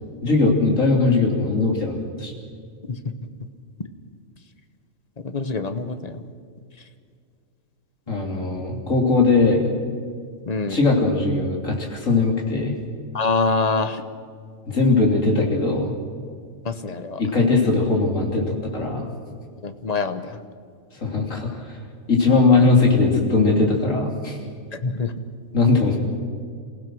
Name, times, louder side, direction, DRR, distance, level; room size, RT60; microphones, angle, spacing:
voice 1, 0.2-2.3 8.1-9.6 10.7-12.8 14.7-15.9 17.2-19.1 21.0-21.5 22.1-24.4 25.5-26.0, left 3 dB, 70° left, 1 dB, 3.5 m, -19 dB
voice 2, 5.3-6.2 10.5-10.8 13.1-14.0 16.6-17.2 19.6-20.4 24.7-25.1, left 3 dB, 30° left, 9 dB, 1.1 m, -25 dB
27.5 x 16.0 x 6.3 m, 2.1 s
omnidirectional pair, 1.4 m